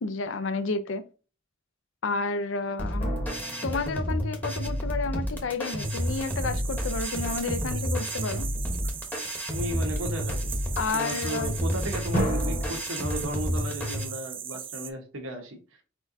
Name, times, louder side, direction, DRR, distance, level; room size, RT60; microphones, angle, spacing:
voice 1, 0.0-1.0 2.0-3.1 3.6-8.5 10.8-11.5, left 4 dB, 70° left, 0.5 m, -31 dB
sound 1, 2.8-14.0, equal, 10° left, 1.0 m, -30 dB
sound 2, 3.0-5.1 12.1-12.8, right 1 dB, 40° left, 1.6 m, -33 dB
sound 3, 5.8-14.9, right 8 dB, 25° right, 0.4 m, -38 dB
voice 2, 9.5-10.5 10.9-15.6, equal, 85° right, 1.2 m, -35 dB
4.6 x 4.3 x 2.6 m
head